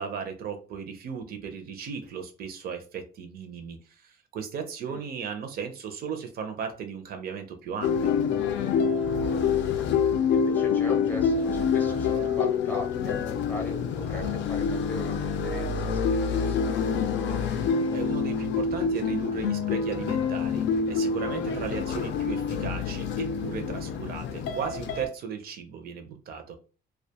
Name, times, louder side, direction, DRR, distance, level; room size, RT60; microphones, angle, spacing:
voice 1, 0.0-8.2 17.6-26.6, right 6 dB, 55° right, 6 dB, 0.5 m, -36 dB
sound 1, 7.8-25.1, left 6 dB, 80° left, 0.4 m, -27 dB
voice 2, 9.3-9.8 10.3-17.4 21.7-21.8, left 1 dB, 10° left, 1 dB, 0.5 m, -41 dB
2.3 x 2.2 x 2.7 m, 0.35 s
cardioid pair, 170°, 19 cm